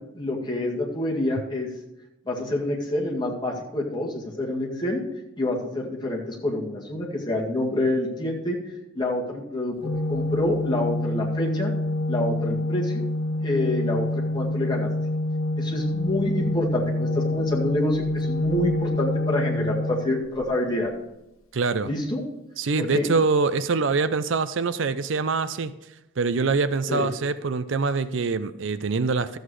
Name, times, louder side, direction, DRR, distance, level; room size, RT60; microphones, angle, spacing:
voice 1, 0.1-1.7 2.3-5.0 5.4-8.6 8.9-9.7 10.1-11.7 12.1-13.0 13.4-14.9 15.6-20.9 21.8-22.2 22.8-23.1 26.9-27.1, left 1 dB, 20° left, -2 dB, 2.0 m, -27 dB
Organ, 9.8-20.7, left 1 dB, 85° left, 1.2 m, -27 dB
voice 2, 21.5-21.9 22.6-25.7 26.2-29.4, right 4 dB, 65° right, 13 dB, 0.5 m, -24 dB
13.0 x 8.0 x 4.8 m, 0.91 s
head